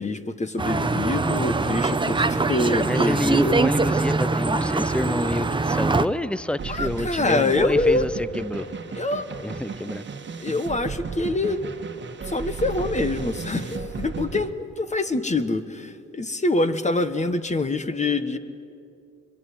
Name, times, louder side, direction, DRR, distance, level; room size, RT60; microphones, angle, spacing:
voice 1, 0.0-3.6 6.7-8.0 8.9-9.6 10.4-11.7 12.2-18.4, left 2 dB, 25° left, 10 dB, 1.5 m, -25 dB
sound 1, 0.6-6.1, right 3 dB, 15° right, 0.9 m, -23 dB
voice 2, 2.8-8.7 9.4-10.1, left 1 dB, 5° left, 18 dB, 0.6 m, -28 dB
sound 2, 6.6-14.5, right 5 dB, 40° right, 1.6 m, -34 dB
24.0 x 23.0 x 9.4 m, 2.6 s
cardioid pair, 90°, 30 cm